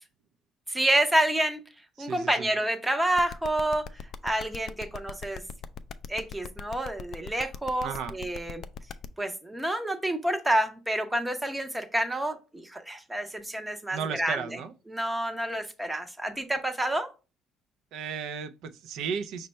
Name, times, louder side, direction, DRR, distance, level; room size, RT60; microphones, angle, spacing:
voice 1, 0.7-1.6 2.0-5.4 6.1-8.6 9.2-14.4 14.9-17.1, right 1 dB, 5° right, 0.6 m, -28 dB
voice 2, 2.0-2.5 7.8-8.2 13.9-14.7 17.9-19.5, right 6 dB, 70° right, 0.3 m, -34 dB
sound 1, 3.2-9.0, left 8 dB, 55° left, 0.3 m, -39 dB
5.2 x 2.2 x 4.0 m
cardioid pair, 130°, 0 cm